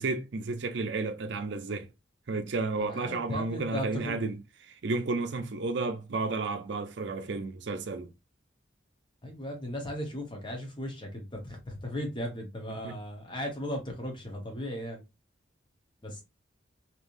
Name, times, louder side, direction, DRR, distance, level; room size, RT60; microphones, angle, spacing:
voice 1, 0.0-1.9 2.3-4.4 4.7-8.1 12.8-13.0, right 3 dB, 60° right, 0.5 m, -32 dB
voice 2, 2.8-4.2 9.2-15.0 16.0-16.2, equal, 25° left, 1.0 m, -37 dB
3.3 x 2.9 x 2.5 m
head